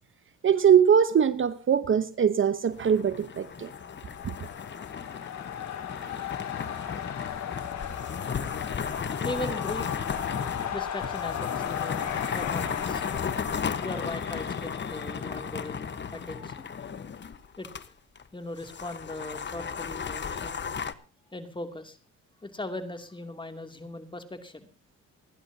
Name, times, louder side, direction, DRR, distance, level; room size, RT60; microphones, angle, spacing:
voice 1, 0.4-3.7, right 8 dB, 40° right, 0.9 m, -22 dB
sound 1, 2.7-17.9 18.2-18.3 18.6-20.9, left 6 dB, 35° left, 1.2 m, -35 dB
sound 2, 3.2-17.0, left 9 dB, 65° left, 2.7 m, -37 dB
voice 2, 9.2-10.0 10.7-13.0 13.8-16.7 17.6-17.7 18.3-20.5 21.3-22.0 22.4-24.7, left 1 dB, 15° left, 2.7 m, -39 dB
29.0 x 11.0 x 2.8 m
cardioid pair, 90°, 30 cm